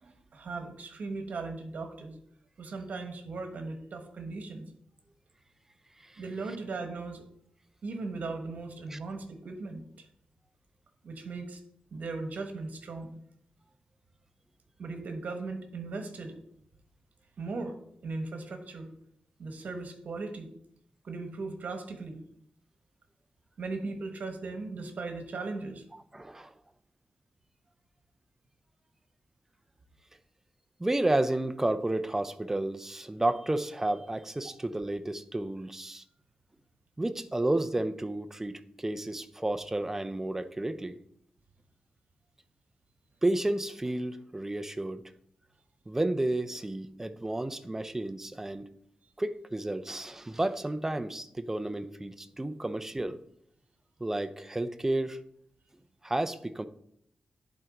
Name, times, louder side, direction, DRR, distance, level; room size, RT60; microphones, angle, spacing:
voice 1, 0.0-2.2 2.6-4.7 6.2-7.2 7.8-10.1 11.0-11.6 11.9-13.2 14.8-16.3 17.4-17.8 18.0-18.9 19.4-20.5 21.0-22.2 23.6-25.8, right 3 dB, 70° right, 6 dB, 1.2 m, -38 dB
voice 2, 26.1-26.5 30.8-36.0 37.0-41.0 43.2-45.0 45.9-48.7 49.2-53.2 54.0-55.2 56.0-56.7, right 1 dB, 15° right, 11 dB, 0.5 m, -31 dB
10.5 x 4.5 x 3.7 m, 0.69 s
wide cardioid pair, 135°, 3 cm